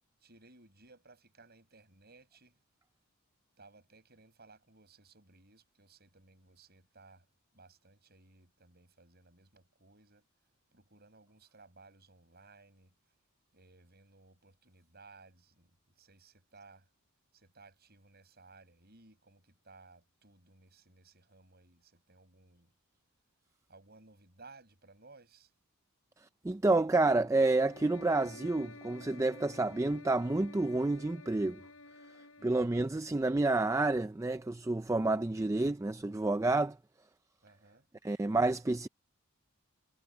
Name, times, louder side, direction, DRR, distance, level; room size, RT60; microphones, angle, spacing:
voice 1, 0.2-2.6 3.6-7.3 7.5-10.3 10.7-13.1 13.5-16.9 17.3-22.7 23.7-25.5 32.4-32.7 37.4-37.9, right 3 dB, 45° right, 7.5 m, -60 dB
voice 2, 26.4-31.6 32.4-36.8 38.0-38.9, right 2 dB, 15° right, 0.3 m, -29 dB
sound 1, 27.4-32.8, left 2 dB, 65° left, 4.9 m, -52 dB
head